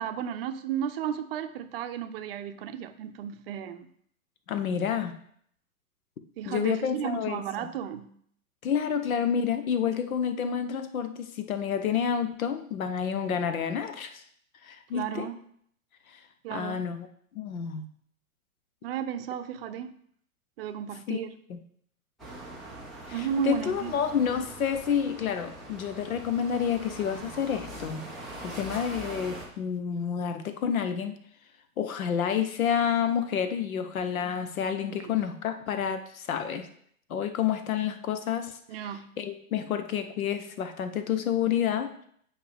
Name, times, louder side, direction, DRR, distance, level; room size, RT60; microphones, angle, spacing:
voice 1, 0.0-3.9 6.4-8.1 14.9-15.4 16.4-16.8 18.8-19.9 20.6-21.3 23.1-23.9 34.9-35.1 38.7-39.1, right 8 dB, 45° right, 9 dB, 0.6 m, -33 dB
voice 2, 4.5-5.2 6.4-7.7 8.6-14.2 14.6-15.3 16.5-17.1 17.3-17.9 21.1-21.2 21.5-21.6 23.2-28.0 28.4-31.1 31.8-36.7 37.1-38.6 39.2-42.1, left 8 dB, 70° left, 8 dB, 1.0 m, -29 dB
sound 1, 22.2-29.5, right 1 dB, ahead, 0.3 m, -42 dB
8.9 x 4.6 x 3.5 m, 0.65 s
hypercardioid pair, 115°, 44 cm